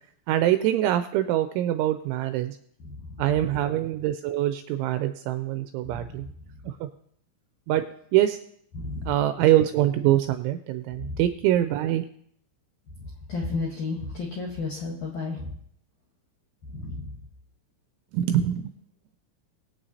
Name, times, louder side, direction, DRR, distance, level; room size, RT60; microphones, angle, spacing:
voice 1, 0.3-2.6 3.2-6.3 6.6-6.9 7.7-7.8 8.1-8.4 9.1-12.1 18.1-18.7, right 13 dB, 85° right, 9 dB, 2.7 m, -24 dB
voice 2, 8.8-9.1 13.3-15.4 16.7-17.0, left 3 dB, 75° left, -3 dB, 1.8 m, -31 dB
23.0 x 8.0 x 2.8 m, 0.67 s
omnidirectional pair, 5.9 m